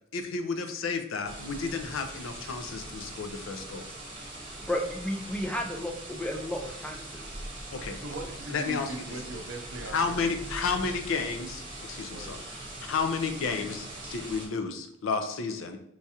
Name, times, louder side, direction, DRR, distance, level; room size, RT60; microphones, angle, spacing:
voice 1, 0.1-3.9 7.7-8.0 8.5-9.2 9.9-15.8, left 4 dB, 75° left, 7 dB, 0.4 m, -32 dB
sound 1, 1.2-14.5, right 1 dB, 25° right, 0.9 m, -42 dB
voice 2, 4.7-7.2, left 1 dB, 5° left, 2 dB, 0.4 m, -33 dB
voice 3, 8.0-10.4 12.0-12.4, right 2 dB, 70° right, 4 dB, 0.5 m, -40 dB
4.5 x 2.4 x 2.7 m, 0.76 s
head